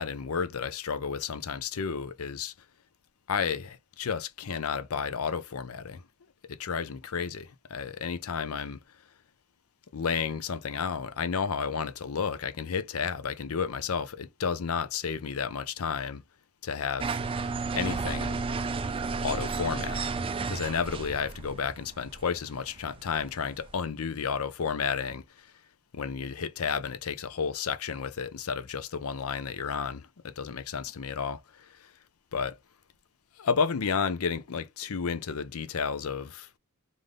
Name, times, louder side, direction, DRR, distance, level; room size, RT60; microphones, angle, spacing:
voice 1, 0.0-2.5 3.3-6.0 6.5-8.8 9.9-16.2 16.6-17.2 17.7-18.4 19.2-20.0 20.5-25.5 25.9-31.9 32.3-32.6 33.4-36.5, left 6 dB, 75° left, 0.5 m, -32 dB
sound 1, 17.0-23.7, right 4 dB, 25° right, 0.3 m, -33 dB
3.3 x 2.6 x 3.6 m
head